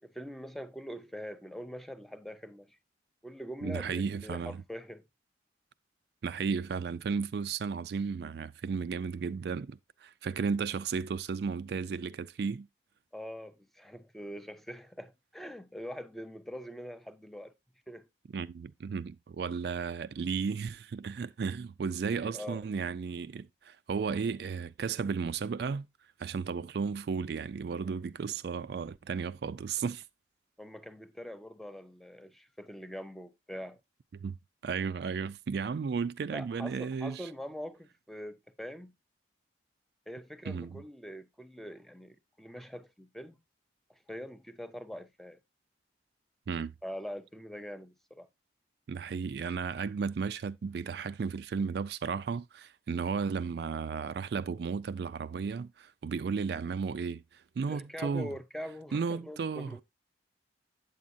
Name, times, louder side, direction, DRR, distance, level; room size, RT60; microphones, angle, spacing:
voice 1, 0.0-2.8 3.2-5.1 13.1-17.5 17.9-18.0 22.0-22.6 30.6-33.8 36.3-38.9 40.1-43.4 43.9-45.4 46.8-48.3 57.7-59.8, equal, ahead, 0.5 m, -43 dB
voice 2, 3.6-4.6 6.2-12.7 18.3-25.9 26.2-30.0 34.2-34.4 34.6-37.3 40.5-40.8 46.5-46.7 48.9-58.3 58.9-59.8, right 5 dB, 60° right, 0.3 m, -34 dB
8.5 x 7.3 x 2.6 m
head